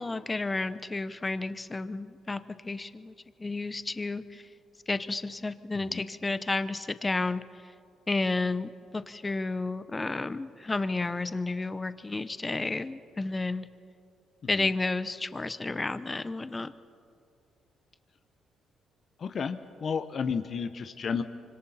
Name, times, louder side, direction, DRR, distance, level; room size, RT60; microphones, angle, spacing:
voice 1, 0.0-3.1 3.4-4.5 4.9-7.4 8.1-13.7 14.5-16.7, left 3 dB, 20° left, 13 dB, 0.8 m, -31 dB
voice 2, 19.2-21.2, left 6 dB, 50° left, 9 dB, 0.9 m, -32 dB
25.5 x 25.0 x 4.3 m, 2.4 s
cardioid pair, 90°, 0 cm